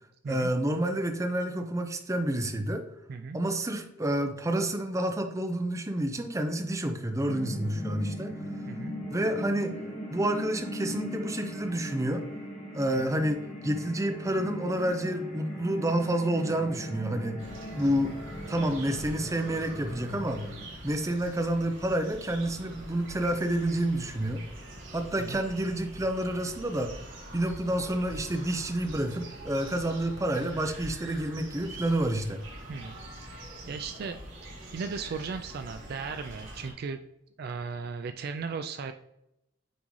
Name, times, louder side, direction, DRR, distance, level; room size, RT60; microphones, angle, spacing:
voice 1, 0.3-2.8 3.3-8.3 9.1-9.8 10.1-12.3 12.7-17.4 17.8-18.1 18.5-20.5 20.8-24.5 24.9-26.9 27.3-32.4, right 1 dB, 15° right, 5 dB, 0.6 m, -29 dB
sound 1, 7.2-20.6, left 1 dB, 35° left, 1.4 m, -39 dB
voice 2, 8.7-9.0 12.9-13.1 25.2-25.4 32.7-33.0 33.3-34.2 34.7-37.0 37.4-38.9, right 5 dB, 55° right, 8 dB, 0.3 m, -36 dB
sound 2, 17.4-36.7, right 1 dB, 70° right, 2.2 m, -45 dB
9.2 x 3.7 x 3.1 m, 0.84 s
head